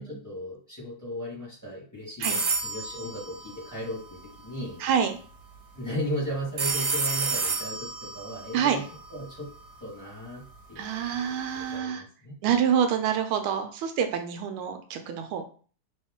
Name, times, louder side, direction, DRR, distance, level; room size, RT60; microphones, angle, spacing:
voice 1, 0.0-4.8 5.7-8.8 9.1-9.5 9.8-12.3, equal, 10° left, -5 dB, 1.2 m, -36 dB
sound 1, 2.2-4.3 6.6-9.6, right 4 dB, 65° right, 1.2 m, -31 dB
voice 2, 4.8-5.1 8.5-8.8 10.8-12.0 12.4-15.4, right 8 dB, 90° right, 6 dB, 1.5 m, -27 dB
3.1 x 2.9 x 3.5 m, 0.41 s
omnidirectional pair, 2.2 m